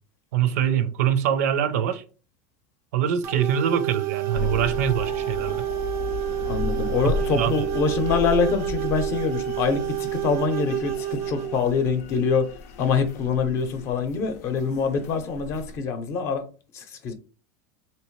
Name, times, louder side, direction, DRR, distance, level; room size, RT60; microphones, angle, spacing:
voice 1, 0.3-2.0 2.9-5.6 7.2-7.7, right 9 dB, 85° right, 0.6 m, -24 dB
sound 1, 3.2-11.6, right 15 dB, 35° right, 0.4 m, -29 dB
sound 2, 4.3-15.8, left 5 dB, 85° left, 0.6 m, -35 dB
voice 2, 6.5-10.9 11.3-12.4 12.8-16.4 16.7-17.1, left 5 dB, 35° left, 0.6 m, -24 dB
3.5 x 2.9 x 3.1 m
supercardioid pair, 170°, 8 cm